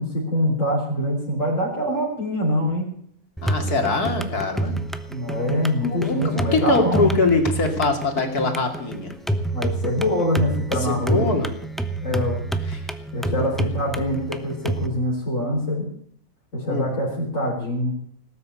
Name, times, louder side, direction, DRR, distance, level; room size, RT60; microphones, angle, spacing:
voice 1, 0.0-2.9 5.1-7.1 9.5-11.4 12.0-12.4 13.1-15.9 16.5-17.9, equal, 55° left, -5 dB, 4.8 m, -24 dB
voice 2, 3.4-4.8 5.8-9.1 10.8-11.5 12.1-12.3 12.7-12.8 13.3-13.4 16.7-17.0, left 3 dB, 90° left, 4 dB, 3.1 m, -23 dB
sound 1, 3.4-14.9, right 2 dB, ahead, 0.7 m, -28 dB
19.0 x 8.6 x 8.5 m, 0.65 s
omnidirectional pair, 1.6 m